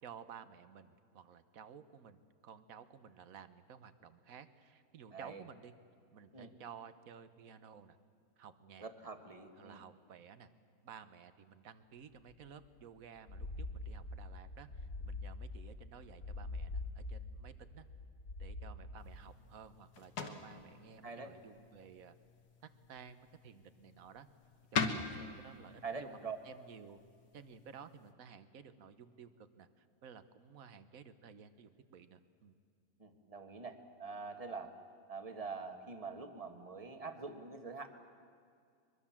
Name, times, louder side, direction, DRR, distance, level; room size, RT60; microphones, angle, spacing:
voice 1, 0.0-5.7 6.1-8.0 8.4-8.9 9.6-10.5 10.8-17.8 18.4-22.1 22.9-24.3 24.7-27.0 27.3-32.5, right 7 dB, 65° right, 12 dB, 1.4 m, -54 dB
voice 2, 5.1-5.4 6.3-6.5 8.8-9.8 21.0-21.3 25.8-26.4 33.0-34.7 35.1-37.9, right 4 dB, 25° right, 6 dB, 1.6 m, -45 dB
sound 1, 13.3-19.3, left 2 dB, 60° left, 2.1 m, -45 dB
sound 2, 19.0-28.1, left 5 dB, 80° left, 1.9 m, -44 dB
23.0 x 22.5 x 7.3 m, 2.2 s
omnidirectional pair, 1.7 m